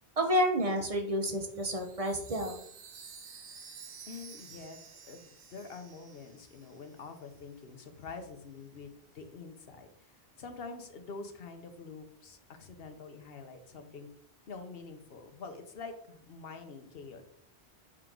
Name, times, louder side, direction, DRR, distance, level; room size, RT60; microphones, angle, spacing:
voice 1, 0.2-2.6, equal, 35° right, 4 dB, 1.0 m, -29 dB
Chime, 1.5-7.1, right 6 dB, 90° right, 1.1 m, -51 dB
voice 2, 4.1-4.8 5.1-10.1 10.4-14.1 14.5-17.2, left 4 dB, 65° left, 6 dB, 1.1 m, -46 dB
6.2 x 4.5 x 3.9 m, 0.68 s
omnidirectional pair, 1.1 m